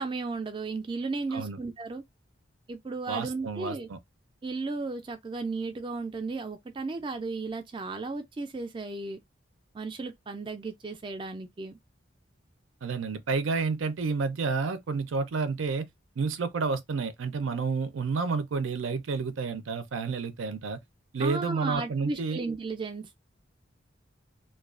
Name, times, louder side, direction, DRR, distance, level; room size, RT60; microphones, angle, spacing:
voice 1, 0.0-2.0 2.7-3.9 4.4-9.2 9.7-11.8 21.2-23.2, right 3 dB, 25° right, 0.3 m, -34 dB
voice 2, 3.1-4.0 12.8-15.9 16.2-20.8 21.1-22.4, right 4 dB, 90° right, 0.5 m, -30 dB
2.3 x 2.2 x 2.3 m
head